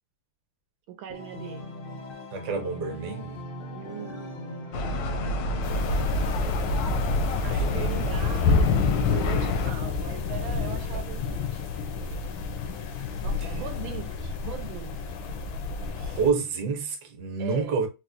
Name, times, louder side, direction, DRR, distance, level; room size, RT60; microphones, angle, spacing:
voice 1, 0.9-1.6 3.7-5.0 5.3-5.4 7.4-12.2 13.2-15.2 17.4-17.8, right 10 dB, 85° right, 1.4 m, -40 dB
Organ, 1.1-6.8, left 1 dB, 55° left, 0.6 m, -40 dB
voice 2, 2.3-3.4 7.7-7.9 13.4-13.5 16.0-17.9, right 5 dB, 65° right, 1.3 m, -28 dB
sound 1, 4.7-9.7, left 1 dB, 75° left, 0.9 m, -28 dB
sound 2, 5.6-16.3, left 5 dB, 90° left, 1.4 m, -29 dB
4.4 x 2.1 x 2.4 m
omnidirectional pair, 2.1 m